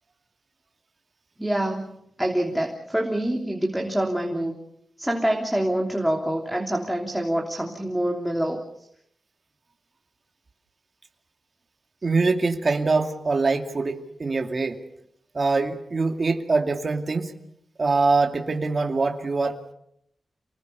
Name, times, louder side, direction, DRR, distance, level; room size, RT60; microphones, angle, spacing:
voice 1, 1.4-1.9 2.2-4.6 5.0-8.6, right 1 dB, ahead, 0 dB, 3.2 m, -26 dB
voice 2, 12.0-14.8 15.3-17.3 17.8-19.7, right 3 dB, 45° right, 4 dB, 2.5 m, -23 dB
28.5 x 20.5 x 7.0 m, 0.73 s
wide cardioid pair, 90°, 0 cm